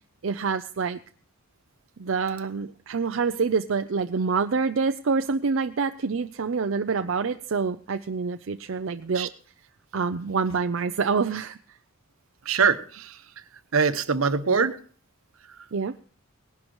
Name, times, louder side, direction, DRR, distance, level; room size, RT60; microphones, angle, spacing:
voice 1, 0.2-1.0 2.0-9.3 9.9-11.6 15.7-15.9, right 5 dB, 65° right, 8 dB, 0.5 m, -26 dB
voice 2, 12.4-13.2 13.7-14.8 15.5-15.7, right 5 dB, 80° right, 11 dB, 1.0 m, -23 dB
19.0 x 11.5 x 3.0 m, 0.43 s
head